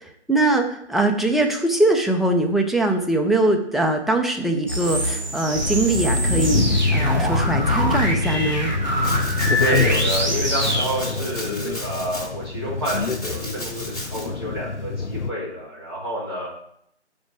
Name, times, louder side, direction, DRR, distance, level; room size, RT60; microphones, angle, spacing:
voice 1, 0.0-6.6 6.9-8.7, right 2 dB, ahead, 2 dB, 0.4 m, -22 dB
sound 1, 4.7-10.8, equal, 40° right, 1.6 m, -24 dB
sound 2, 5.5-15.3, left 4 dB, 70° left, 0.6 m, -26 dB
Domestic sounds home sounds, 9.0-10.2 10.6-12.3 12.8-14.3, left 1 dB, 30° left, 1.7 m, -35 dB
voice 2, 9.6-16.5, equal, 20° right, -8 dB, 2.4 m, -28 dB
5.1 x 4.9 x 6.0 m, 0.70 s
figure-of-eight pair, 165°, 36 cm